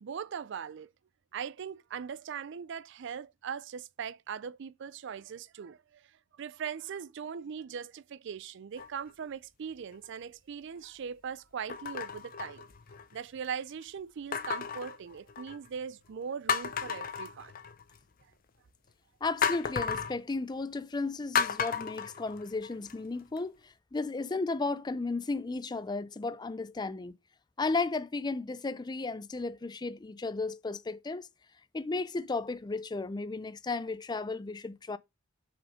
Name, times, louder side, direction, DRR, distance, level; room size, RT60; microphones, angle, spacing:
voice 1, 0.0-0.9 1.3-6.1 6.3-12.6 13.1-17.5, right 7 dB, 60° right, 0.4 m, -40 dB
sound 1, 8.8-9.3 9.9-10.1 11.7-13.2 14.3-15.7 16.1-16.2 16.5-18.0 19.4-20.2 21.3-22.9 23.4-23.5, left 6 dB, 45° left, 0.8 m, -33 dB
voice 2, 19.2-27.2 27.6-31.3 31.7-35.0, left 3 dB, 20° left, 0.4 m, -34 dB
6.2 x 5.1 x 4.9 m
head